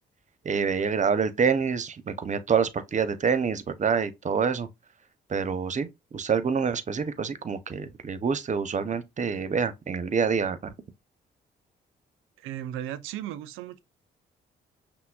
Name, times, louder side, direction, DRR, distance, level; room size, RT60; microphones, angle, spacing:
voice 1, 0.4-4.7 5.3-5.9 6.1-10.7, right 6 dB, 35° right, 0.6 m, -26 dB
voice 2, 12.4-13.8, right 11 dB, 85° right, 0.4 m, -36 dB
5.6 x 2.0 x 2.2 m
supercardioid pair, 55°, 20 cm